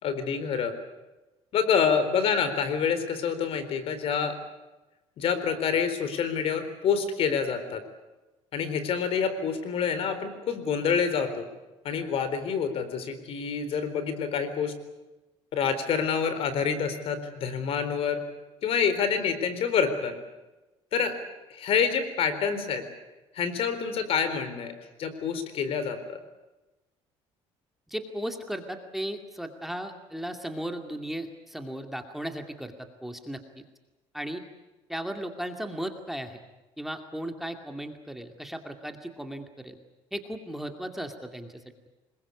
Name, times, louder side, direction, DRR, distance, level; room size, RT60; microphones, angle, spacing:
voice 1, 0.0-0.8 1.5-4.4 5.2-7.8 8.5-11.5 11.8-14.8 15.5-18.2 18.6-20.2 20.9-21.2 21.5-22.8 23.3-24.7 25.0-26.2, left 6 dB, 60° left, 11 dB, 4.0 m, -27 dB
voice 2, 27.9-33.6 34.1-34.4 34.9-36.4 36.8-39.8 40.1-41.6, right 1 dB, ahead, 5 dB, 2.3 m, -36 dB
26.0 x 21.5 x 8.4 m, 1.1 s
cardioid pair, 115°, 11 cm